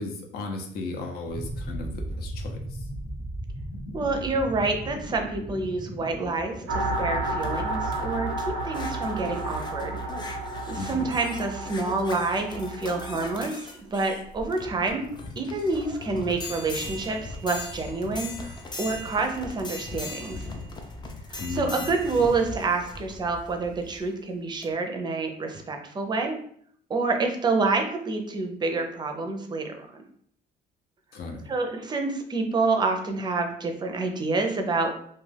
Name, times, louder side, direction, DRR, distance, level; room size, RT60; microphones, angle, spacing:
voice 1, 0.0-2.8 10.8-11.1 21.4-21.8 31.1-31.5, left 3 dB, 70° left, 3 dB, 0.7 m, -35 dB
sound 1, 1.3-10.1, equal, 5° left, 0.8 m, -38 dB
voice 2, 3.9-9.9 10.7-15.1 15.4-20.4 21.3-26.4 26.9-30.0 31.5-35.0, right 3 dB, 25° right, 5 dB, 0.5 m, -28 dB
sound 2, 6.4-24.1 24.6-24.7, left 2 dB, 25° left, 0.5 m, -39 dB
sound 3, 6.7-13.5, right 2 dB, 90° right, 0.6 m, -32 dB
2.4 x 2.2 x 3.3 m, 0.62 s
cardioid pair, 110°, 17 cm